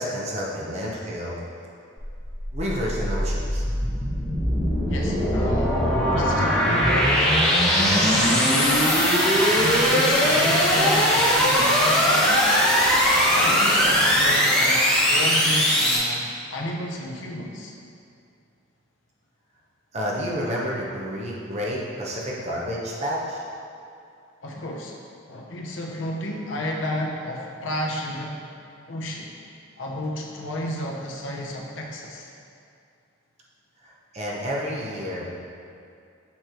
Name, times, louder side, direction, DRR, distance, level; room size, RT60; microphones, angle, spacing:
voice 1, 0.0-1.4 2.5-3.6 13.0-13.3 19.9-23.4 33.8-35.4, equal, 35° right, -4 dB, 0.7 m, -30 dB
sound 1, 2.0-16.0, equal, 5° left, 1.1 m, -20 dB
voice 2, 4.9-5.8 6.1-7.2 7.6-8.9 9.5-12.6 13.3-17.7 24.4-25.0 25.3-28.4 28.9-29.3 29.8-32.3, left 1 dB, 75° left, -1 dB, 0.7 m, -32 dB
7.1 x 3.1 x 4.4 m, 2.5 s
head